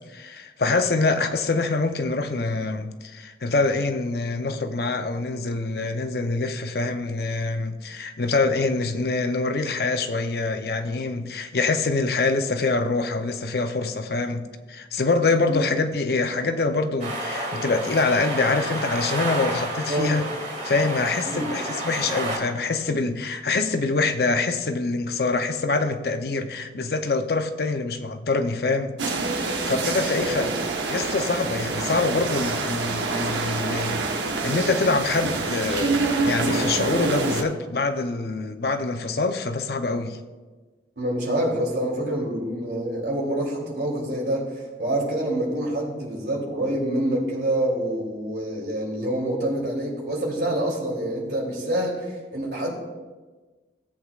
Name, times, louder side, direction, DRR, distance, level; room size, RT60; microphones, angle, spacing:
voice 1, 0.1-20.2 20.6-29.0 29.2-30.5 30.9-36.0 36.2-40.2, left 3 dB, 60° left, 0.6 m, -25 dB
sound 1, 17.0-22.4, right 1 dB, 40° right, 2.3 m, -30 dB
voice 2, 19.9-20.2 21.2-21.6 30.1-30.5 41.0-44.5 44.8-52.7, right 1 dB, 65° right, 2.9 m, -26 dB
sound 2, 29.0-37.4, right 3 dB, 85° right, 1.0 m, -26 dB
17.0 x 8.1 x 2.4 m
head